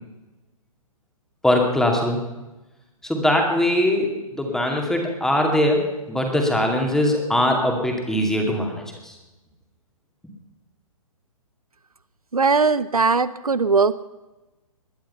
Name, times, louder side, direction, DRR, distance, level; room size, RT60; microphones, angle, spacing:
voice 1, 1.4-2.2 3.0-9.1, left 1 dB, 5° left, 2 dB, 2.5 m, -21 dB
voice 2, 12.3-14.1, right 4 dB, 80° right, 16 dB, 0.7 m, -19 dB
20.5 x 11.5 x 5.7 m, 1.1 s
figure-of-eight pair, 125°, 19 cm